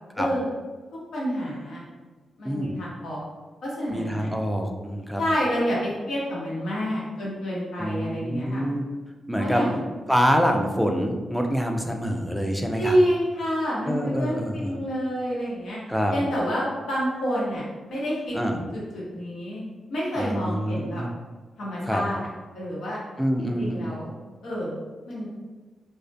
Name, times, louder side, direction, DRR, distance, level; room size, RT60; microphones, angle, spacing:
voice 1, 0.1-0.5 1.1-1.8 2.4-3.3 3.6-4.3 5.2-8.6 9.4-9.8 12.8-15.8 16.1-18.6 18.9-19.6 19.9-21.0 21.6-22.2 22.5-23.0 23.4-24.1 24.4-24.7 25.0-25.3, equal, 85° left, -6 dB, 0.9 m, -28 dB
voice 2, 2.4-2.8 3.9-5.2 7.8-8.9 9.3-9.6 10.1-13.0 13.9-14.7 15.9-16.2 18.3-18.6 20.2-21.1 21.9-22.0 23.2-23.9, equal, ahead, 3 dB, 0.3 m, -26 dB
2.4 x 2.1 x 2.5 m, 1.3 s
cardioid pair, 65°, 0 cm